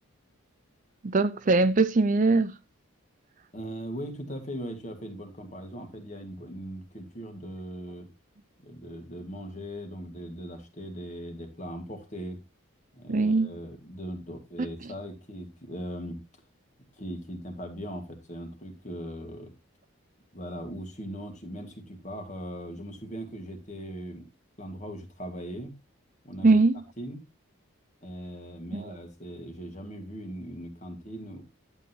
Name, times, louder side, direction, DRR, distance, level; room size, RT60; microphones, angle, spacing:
voice 1, 1.0-2.5 13.1-13.5 14.6-14.7 26.4-26.7 28.7-29.0, right 3 dB, 35° right, 0.5 m, -22 dB
voice 2, 3.5-8.1 8.6-12.4 12.9-16.2 17.0-19.5 20.3-24.3 24.6-25.7 26.2-26.6 27.0-27.2 28.0-31.4, equal, 35° left, 2.0 m, -39 dB
11.0 x 8.1 x 2.8 m
head